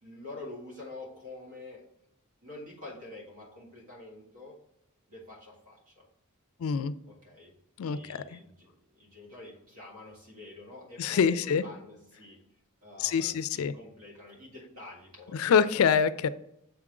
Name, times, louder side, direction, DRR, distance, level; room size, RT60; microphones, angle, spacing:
voice 1, 0.0-1.8 2.4-4.6 5.1-6.1 7.1-7.5 7.8-12.4 12.8-15.4, left 2 dB, 75° right, -2 dB, 2.1 m, -47 dB
voice 2, 6.6-6.9 7.8-8.4 11.0-11.6 13.0-13.7 15.3-16.3, left 6 dB, 65° left, 15 dB, 0.3 m, -25 dB
6.9 x 3.7 x 4.8 m, 0.78 s
head